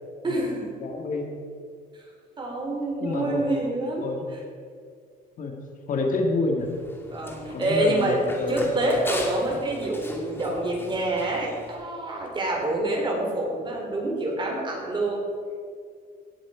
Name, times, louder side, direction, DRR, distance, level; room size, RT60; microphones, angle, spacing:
voice 1, 0.2-0.8 1.9-2.0 2.4-4.1 7.1-8.2 8.5-15.2, right 2 dB, 30° right, 0 dB, 3.6 m, -27 dB
voice 2, 0.8-1.3 3.0-3.6 4.0-4.2 5.4-5.6 5.9-6.7 7.5-8.8, left 2 dB, 50° left, 2 dB, 1.9 m, -28 dB
Run, 6.6-11.7, left 1 dB, 15° left, 2.5 m, -39 dB
17.5 x 7.7 x 5.0 m, 2.1 s
cardioid pair, 110°, 17 cm